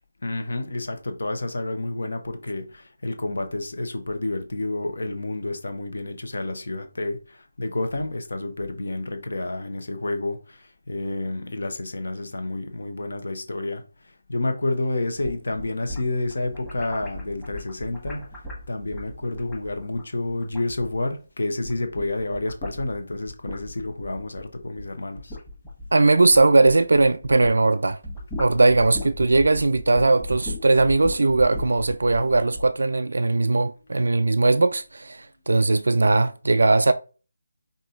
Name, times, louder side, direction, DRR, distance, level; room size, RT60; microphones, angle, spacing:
voice 1, 0.2-13.8 14.3-18.3 18.7-25.4, left 2 dB, 55° left, 1.0 m, -29 dB
sound 1, 15.0-21.2 21.5-27.6 27.9-32.7, left 1 dB, 10° left, 1.3 m, -37 dB
voice 2, 25.9-28.0 28.4-36.9, right 3 dB, 60° right, 0.3 m, -19 dB
5.3 x 2.7 x 3.7 m
figure-of-eight pair, 155°, 0 cm